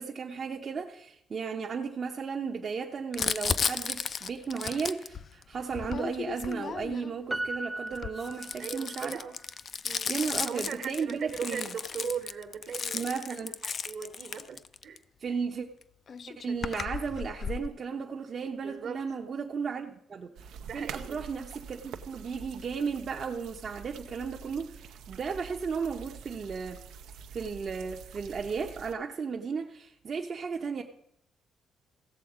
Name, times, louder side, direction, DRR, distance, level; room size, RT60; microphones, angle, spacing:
voice 1, 0.0-9.2 10.1-11.7 12.9-13.5 15.2-15.7 16.3-26.8 27.3-30.8, right 5 dB, 45° right, 1 dB, 0.8 m, -35 dB
Crumpling crinkling, 3.1-7.2 7.9-15.0 15.8-15.9 16.1-17.7, left 6 dB, 50° left, 0.4 m, -34 dB
Piano, 7.3-9.1 9.4-9.5, right 2 dB, 10° right, 0.4 m, -37 dB
voice 2, 8.6-9.4 9.8-15.0 18.6-19.0 20.6-21.2, right 6 dB, 65° right, 7 dB, 1.4 m, -39 dB
sound 1, 20.4-28.9, right 7 dB, 85° right, 0.6 m, -46 dB
15.5 x 7.0 x 4.9 m, 0.77 s
cardioid pair, 90°, 0 cm